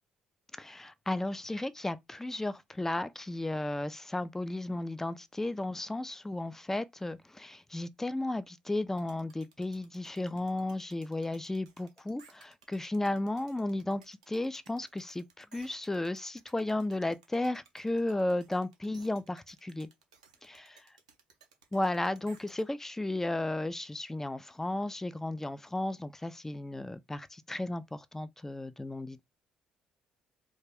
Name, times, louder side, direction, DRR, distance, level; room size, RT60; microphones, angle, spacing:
voice 1, 0.6-19.9 20.4-20.8 21.7-29.2, left 2 dB, 10° left, 0.3 m, -34 dB
sound 1, 9.0-22.6, right 5 dB, 90° right, 0.4 m, -60 dB
2.4 x 2.1 x 3.4 m
hypercardioid pair, 50°, 3 cm